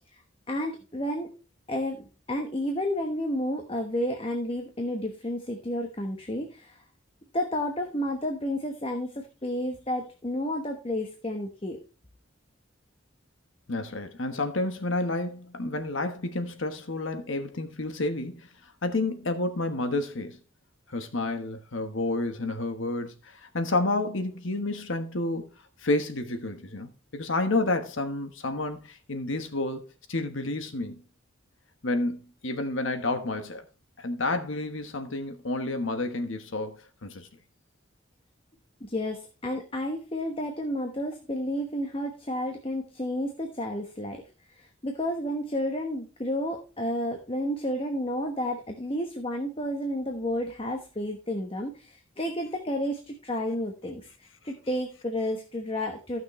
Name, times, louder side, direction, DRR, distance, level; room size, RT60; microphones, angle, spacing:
voice 1, 0.5-1.3 1.7-6.8 7.3-11.8 38.8-44.2 44.6-56.2, left 1 dB, 30° left, 1.1 m, -31 dB
voice 2, 13.7-20.4 20.9-25.5 25.8-31.0 31.8-33.6 34.0-37.3, left 2 dB, 80° left, 1.3 m, -30 dB
14.5 x 6.2 x 3.2 m
head